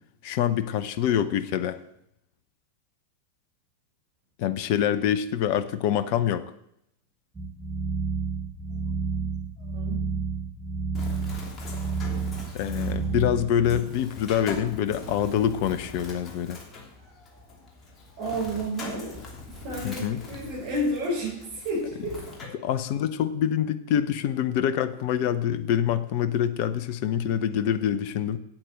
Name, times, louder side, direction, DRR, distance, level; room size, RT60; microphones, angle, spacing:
voice 1, 0.2-1.8 4.4-6.5 12.5-16.6 19.8-20.2 22.5-28.4, left 9 dB, 45° left, 13 dB, 0.8 m, -25 dB
sound 1, 7.3-13.8, right 5 dB, 10° right, 1.6 m, -30 dB
voice 2, 8.7-9.3 9.7-10.0 18.2-19.2 19.6-22.1 22.4-22.5, right 1 dB, 50° right, -6 dB, 5.6 m, -31 dB
Bird, 10.9-22.4, left 2 dB, 25° left, 2.9 m, -42 dB
8.8 x 8.5 x 7.8 m, 0.76 s
figure-of-eight pair, 90°, 0 cm